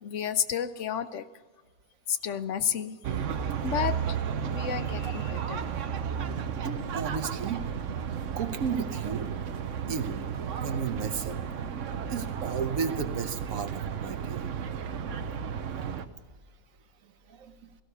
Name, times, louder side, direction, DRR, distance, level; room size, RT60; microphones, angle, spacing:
voice 1, 0.0-1.3 2.1-3.0 3.6-4.2 4.5-6.0, left 8 dB, 65° left, 13 dB, 1.0 m, -31 dB
sound 1, 3.0-16.1, right 7 dB, 70° right, 1.1 m, -33 dB
voice 2, 6.6-7.6 8.4-9.3 9.9-10.3 10.5-11.4 12.1-14.5 17.3-17.5, right 6 dB, 85° right, 9 dB, 1.5 m, -33 dB
17.5 x 15.0 x 5.5 m, 1.3 s
omnidirectional pair, 1.4 m